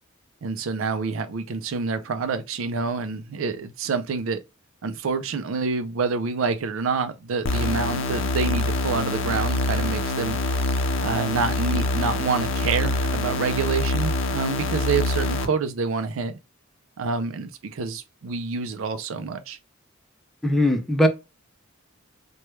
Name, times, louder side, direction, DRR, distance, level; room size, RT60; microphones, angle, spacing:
voice 1, 0.4-4.4 4.8-10.4 11.0-16.4 17.0-19.6, right 4 dB, 80° right, 0.4 m, -27 dB
sound 1, 7.5-15.5, left 2 dB, 70° left, 0.5 m, -25 dB
voice 2, 20.4-21.1, left 1 dB, ahead, 0.4 m, -19 dB
3.1 x 2.2 x 3.0 m
head